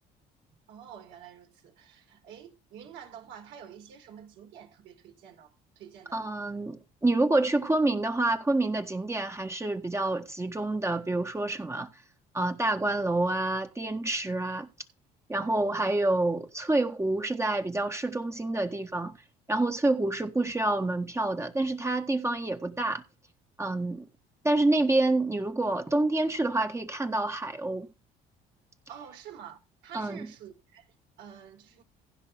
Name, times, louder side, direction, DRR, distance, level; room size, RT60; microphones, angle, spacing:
voice 1, 0.7-6.4 15.4-15.8 28.9-31.8, right 9 dB, 75° right, 4.8 m, -48 dB
voice 2, 6.1-11.9 12.3-14.7 15.3-19.2 19.5-23.0 23.6-24.1 24.4-27.9 29.9-30.3, right 2 dB, 15° right, 1.5 m, -27 dB
16.0 x 5.4 x 5.0 m
supercardioid pair, 80°, 19 cm